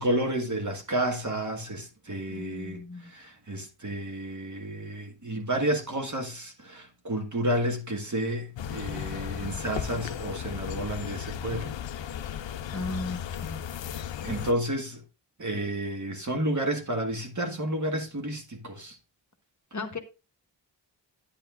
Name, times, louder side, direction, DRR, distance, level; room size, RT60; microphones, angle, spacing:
voice 1, 0.0-11.8 14.2-15.0 15.4-19.0, right 1 dB, 40° right, 1.8 m, -31 dB
voice 2, 2.3-3.1 12.7-13.6 19.7-20.0, left 3 dB, 40° left, 1.1 m, -36 dB
sound 1, 8.6-14.5, left 9 dB, 75° left, 0.6 m, -35 dB
9.9 x 9.3 x 2.5 m
wide cardioid pair, 100°, 45 cm